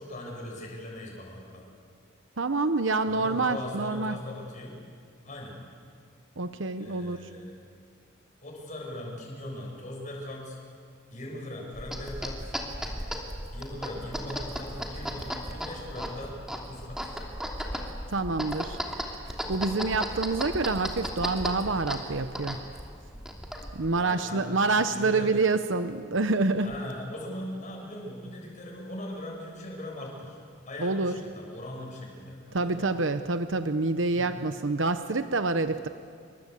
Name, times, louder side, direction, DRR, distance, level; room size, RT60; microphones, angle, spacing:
voice 1, 0.0-1.6 3.0-4.8 5.2-5.6 6.8-7.6 8.4-10.6 11.1-12.5 13.5-16.3 16.7-17.1 23.9-24.5 24.8-25.3 26.6-30.4 30.6-32.9 34.1-34.3, left 1 dB, 40° left, -1 dB, 7.4 m, -40 dB
voice 2, 2.4-4.2 6.4-7.3 18.1-18.8 19.5-22.6 23.7-26.7 30.8-31.2 32.5-35.9, right 3 dB, 70° right, 10 dB, 0.9 m, -27 dB
sound 1, 11.7-23.9, equal, 5° right, 3.0 m, -36 dB
28.0 x 24.5 x 8.4 m, 2.2 s
head